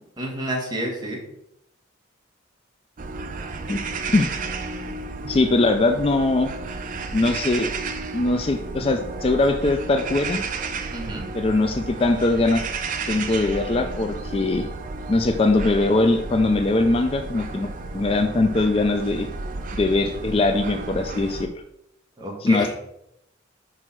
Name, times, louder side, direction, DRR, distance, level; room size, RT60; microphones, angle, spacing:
voice 1, 0.2-1.2 10.9-11.3 22.2-22.7, right 1 dB, 20° right, -1 dB, 1.3 m, -29 dB
sound 1, 3.0-21.5, right 3 dB, 45° right, 0.5 m, -32 dB
voice 2, 5.2-6.5 7.1-7.7 8.1-10.4 11.3-12.6 13.1-14.7 15.1-19.3 19.7-21.5 22.4-22.7, left 2 dB, 30° left, 7 dB, 0.4 m, -21 dB
6.2 x 4.8 x 4.4 m, 0.80 s
head